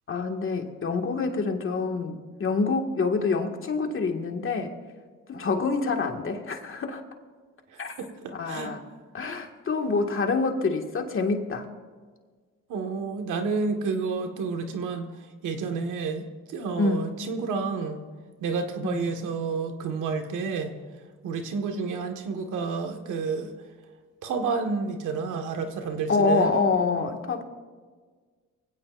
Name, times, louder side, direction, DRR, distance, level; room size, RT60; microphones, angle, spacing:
voice 1, 0.1-4.7 5.3-7.0 7.8-8.0 8.4-8.8 9.1-11.7 16.8-17.1 18.8-19.1 26.1-27.4, left 4 dB, 45° left, 3 dB, 2.0 m, -26 dB
voice 2, 7.7-8.7 12.7-15.1 15.4-18.0 18.4-20.8 21.2-23.5 24.2-26.5, right 4 dB, 85° right, 4 dB, 1.7 m, -30 dB
24.0 x 16.5 x 2.6 m, 1.5 s
cardioid pair, 90°, 30 cm